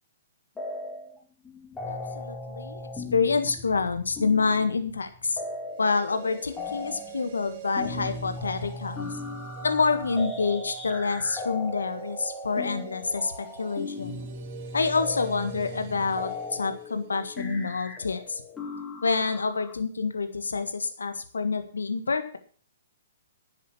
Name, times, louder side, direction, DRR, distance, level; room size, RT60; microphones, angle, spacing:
sound 1, 0.6-1.2 1.4-19.7, left 3 dB, 15° left, 3.2 m, -38 dB
voice 1, 1.9-5.4 5.8-9.1 9.6-14.2 14.7-18.4 19.0-22.4, left 4 dB, 85° left, 9 dB, 1.6 m, -27 dB
sound 2, 5.6-17.7 18.0-18.1, right 10 dB, 45° right, 1.9 m, -45 dB
11.0 x 7.6 x 7.1 m, 0.43 s
hypercardioid pair, 130°, 0 cm